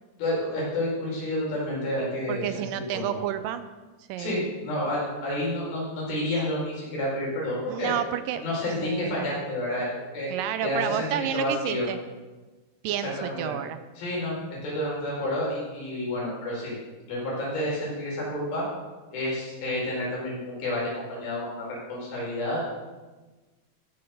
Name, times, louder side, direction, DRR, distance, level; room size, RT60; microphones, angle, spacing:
voice 1, 0.2-2.4 2.7-3.2 4.2-7.9 8.4-9.9 10.1-10.3 10.6-11.9 13.0-13.5 14.0-16.7 17.1-18.7 19.1-22.7, left 1 dB, 85° left, -5 dB, 6.6 m, -30 dB
voice 2, 2.3-3.7 4.1-4.4 7.7-8.4 8.8-9.3 10.3-12.0 12.8-13.8 14.2-14.5, right 11 dB, 80° right, 11 dB, 2.1 m, -30 dB
15.0 x 7.8 x 6.7 m, 1.2 s
omnidirectional pair, 4.2 m